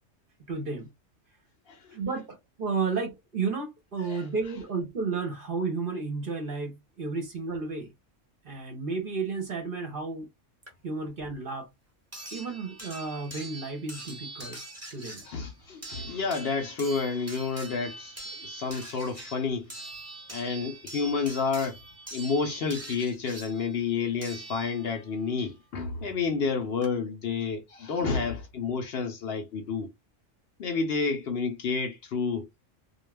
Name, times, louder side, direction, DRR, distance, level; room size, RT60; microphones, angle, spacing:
voice 1, 0.5-0.9 1.9-7.9 8.4-10.3 10.8-11.7 12.3-14.6 14.9-15.2, right 4 dB, 50° right, 0.8 m, -32 dB
sound 1, 10.7-10.8 12.1-25.1 26.4-26.5 26.8-26.9, right 2 dB, 15° right, 0.7 m, -43 dB
voice 2, 15.2-19.7 20.3-21.8 22.1-29.9 30.6-32.5, left 5 dB, 60° left, 0.7 m, -30 dB
2.3 x 2.3 x 3.2 m
omnidirectional pair, 1.3 m